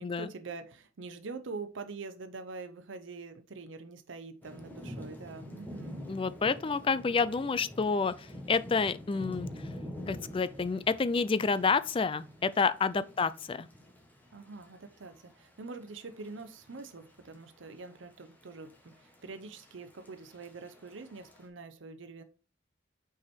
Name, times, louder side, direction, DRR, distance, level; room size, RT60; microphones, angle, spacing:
voice 1, 0.0-6.0 12.9-13.1 14.3-22.2, right 4 dB, 85° right, 0.7 m, -45 dB
Thunder / Rain, 4.4-21.4, left 1 dB, 10° left, 1.5 m, -47 dB
voice 2, 6.1-9.5 10.1-13.7, left 4 dB, 30° left, 0.4 m, -29 dB
5.9 x 4.8 x 4.4 m
head